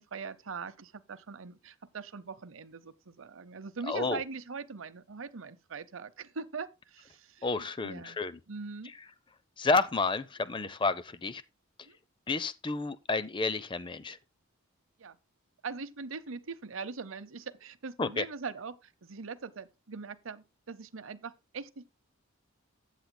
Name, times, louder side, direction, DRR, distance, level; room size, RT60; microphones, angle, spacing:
voice 1, 0.0-8.2 8.5-8.9 11.9-12.0 15.0-15.2 15.6-21.9, right 4 dB, 70° right, 0.8 m, -42 dB
voice 2, 3.9-4.2 7.4-8.4 9.6-11.4 12.3-14.2 18.0-18.2, left 3 dB, 25° left, 0.5 m, -30 dB
14.0 x 8.4 x 2.2 m
head